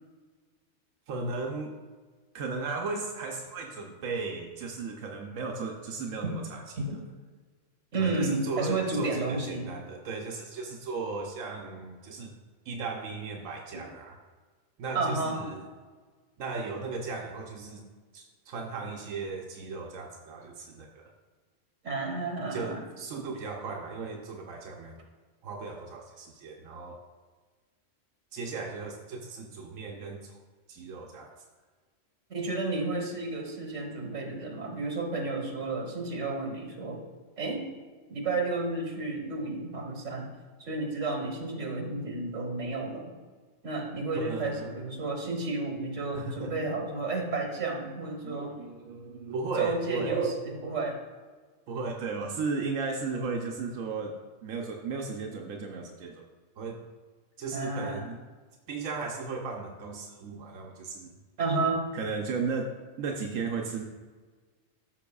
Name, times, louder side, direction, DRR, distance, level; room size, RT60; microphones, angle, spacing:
voice 1, 1.1-1.8 2.3-6.6 7.9-12.3 12.6-14.2 14.8-15.6 16.4-17.8 18.1-21.1 22.5-25.0 25.4-27.0 28.3-30.4 30.7-31.3 44.2-44.8 46.1-46.5 48.2-50.2 51.7-56.3 56.6-56.8 57.4-58.2 58.7-61.2 61.9-63.8, right 4 dB, 90° right, 1 dB, 1.1 m, -36 dB
voice 2, 7.9-9.7 14.9-15.4 21.8-22.8 32.3-37.0 37.4-37.6 38.1-40.3 40.6-43.1 43.6-48.5 49.6-51.0 57.5-58.1 61.4-61.8, right 3 dB, 70° right, 2 dB, 1.6 m, -31 dB
13.0 x 6.0 x 2.3 m, 1.4 s
omnidirectional pair, 1.3 m